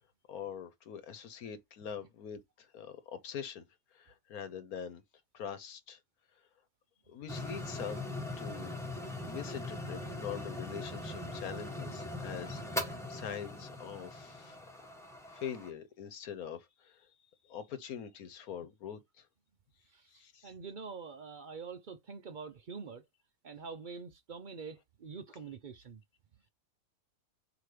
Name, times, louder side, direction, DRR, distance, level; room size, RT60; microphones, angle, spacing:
voice 1, 0.3-3.6 3.9-5.0 5.3-6.0 7.1-8.8 9.3-14.6 15.3-17.1 17.4-19.3 20.1-20.5, left 8 dB, 70° left, 1.4 m, -44 dB
sound 1, 7.3-15.7, left 1 dB, ahead, 1.3 m, -41 dB
voice 2, 19.9-23.1 23.4-26.0, right 5 dB, 55° right, 0.5 m, -45 dB
7.8 x 3.0 x 5.0 m
omnidirectional pair, 1.6 m